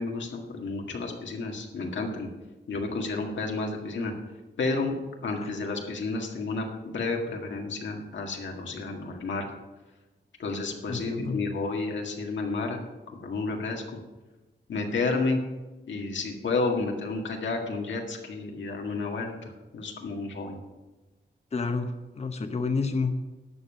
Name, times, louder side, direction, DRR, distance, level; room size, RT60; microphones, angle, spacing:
voice 1, 0.0-2.3 2.7-4.1 4.6-5.0 5.2-9.5 10.4-12.8 13.2-14.0 14.7-15.4 15.9-20.6, left 3 dB, 85° left, 2 dB, 1.9 m, -31 dB
voice 2, 10.9-11.4 21.5-23.1, left 4 dB, 35° left, 7 dB, 0.9 m, -29 dB
12.0 x 5.4 x 8.8 m, 1.1 s
cardioid pair, 85°, 19 cm